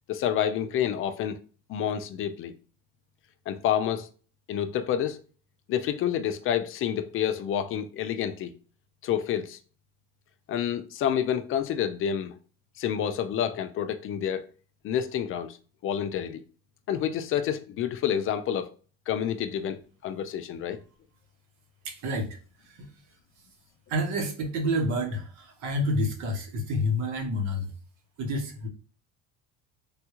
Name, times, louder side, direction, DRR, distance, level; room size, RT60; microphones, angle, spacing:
voice 1, 0.1-1.4 1.7-2.5 3.5-4.1 4.5-5.2 5.7-8.5 9.0-9.6 10.5-12.4 12.8-14.5 14.8-15.6 15.8-16.4 16.9-18.7 19.1-20.8, left 9 dB, 45° left, 0.4 m, -28 dB
voice 2, 21.8-22.4 22.7-22.9 23.9-27.7 28.2-28.7, left 1 dB, 70° right, 1.0 m, -29 dB
3.5 x 2.3 x 2.9 m
cardioid pair, 105°, 30 cm